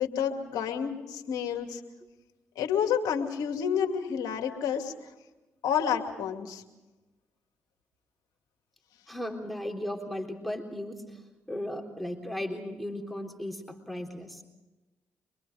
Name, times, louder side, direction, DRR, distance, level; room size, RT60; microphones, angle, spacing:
voice 1, 0.0-1.8 2.6-4.9 5.6-6.6, left 8 dB, 75° left, 4 dB, 2.4 m, -29 dB
voice 2, 9.1-11.2 11.5-14.4, left 1 dB, ahead, 3 dB, 3.7 m, -36 dB
25.0 x 22.5 x 5.1 m, 1.1 s
hypercardioid pair, 45°, 6 cm